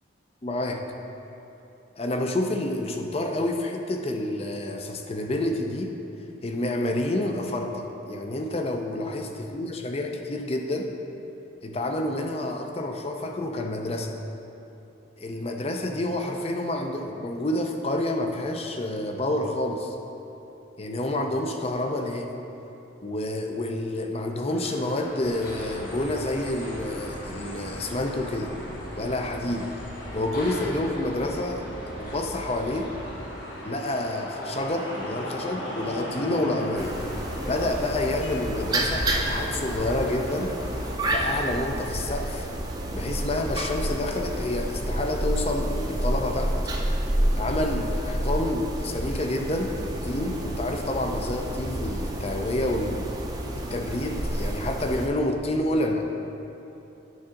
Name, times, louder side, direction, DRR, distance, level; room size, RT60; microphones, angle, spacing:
voice 1, 0.4-0.9 2.0-6.0 6.4-10.9 11.6-14.2 15.2-20.0 20.8-22.4 23.0-28.5 29.0-29.7 30.1-31.7 32.0-32.9 33.6-37.0 37.5-40.6 41.1-42.5 42.9-46.6 47.4-53.0 53.6-56.0, left 1 dB, 30° left, 3 dB, 0.5 m, -28 dB
sound 1, 24.5-40.9, equal, 75° left, 1.2 m, -39 dB
sound 2, 25.2-33.3, equal, 45° left, 1.3 m, -41 dB
sound 3, 36.8-55.1, right 1 dB, 20° right, 0.5 m, -29 dB
9.2 x 3.7 x 5.7 m, 2.9 s
head